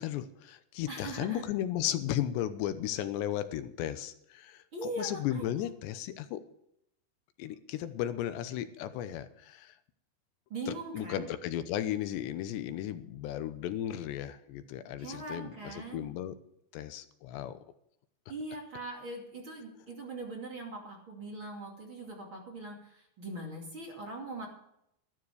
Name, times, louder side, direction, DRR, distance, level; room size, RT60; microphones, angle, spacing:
voice 1, 0.0-6.4 7.4-9.7 10.7-16.4 16.7-17.6, left 11 dB, 90° left, 11 dB, 3.1 m, -35 dB
voice 2, 0.9-1.4 4.7-5.7 10.5-11.3 15.0-16.1 18.3-24.5, right 2 dB, 35° right, -1 dB, 2.8 m, -41 dB
13.5 x 12.5 x 4.9 m, 0.75 s
omnidirectional pair, 5.0 m